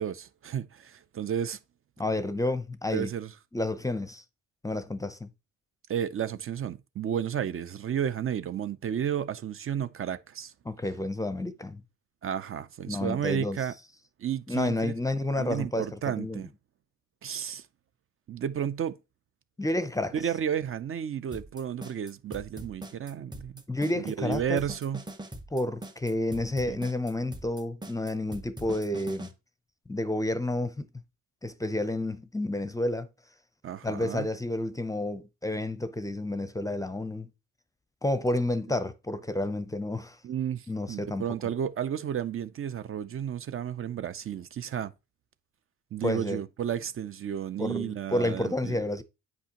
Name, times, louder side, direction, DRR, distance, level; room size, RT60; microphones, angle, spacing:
voice 1, 0.0-1.6 2.9-3.3 5.9-10.5 12.2-13.7 14.2-14.9 15.3-16.5 17.2-17.7 18.3-19.0 20.1-23.6 24.1-25.0 26.7-26.8 33.6-34.3 40.2-44.9 45.9-48.8, right 9 dB, 45° right, 0.5 m, -32 dB
voice 2, 2.0-3.1 3.5-4.2 4.6-5.3 10.7-11.8 12.9-13.6 14.5-16.4 19.6-20.1 23.7-24.6 25.5-29.3 29.9-30.9 31.4-33.1 33.8-37.3 38.0-40.2 40.7-41.2 46.0-46.4 47.6-49.0, left 1 dB, 10° left, 0.6 m, -30 dB
sound 1, 21.3-29.3, right 1 dB, 15° right, 1.0 m, -42 dB
8.1 x 5.3 x 2.9 m
cardioid pair, 90°, 30 cm